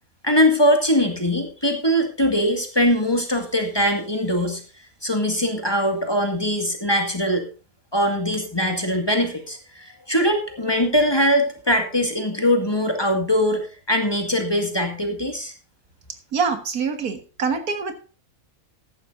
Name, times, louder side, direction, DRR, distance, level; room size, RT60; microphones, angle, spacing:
voice 1, 0.2-4.6 5.0-7.5 7.9-15.5, equal, 15° left, 4 dB, 2.1 m, -21 dB
voice 2, 16.3-17.9, right 5 dB, 80° right, 7 dB, 2.0 m, -25 dB
14.5 x 11.0 x 2.6 m, 0.36 s
omnidirectional pair, 1.5 m